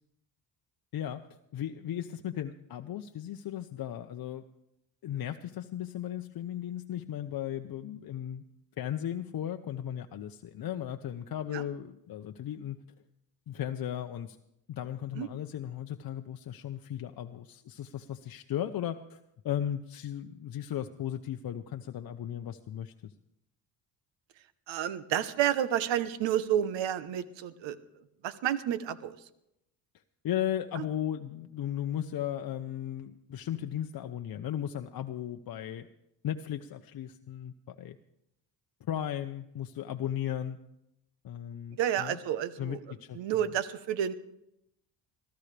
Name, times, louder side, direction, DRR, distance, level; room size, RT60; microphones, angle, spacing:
voice 1, 0.9-1.2 1.5-4.4 5.0-8.4 8.8-12.8 13.5-14.4 14.7-19.2 19.4-23.1 30.2-35.9 36.2-38.0 38.8-40.6 41.2-42.2 42.6-43.2, left 10 dB, 55° left, 6 dB, 0.8 m, -36 dB
voice 2, 24.7-27.8 28.2-29.1 30.7-30.8 41.7-42.8 43.1-44.1, right 10 dB, 80° right, 13 dB, 1.1 m, -30 dB
22.0 x 14.0 x 3.4 m, 0.81 s
cardioid pair, 80°, 44 cm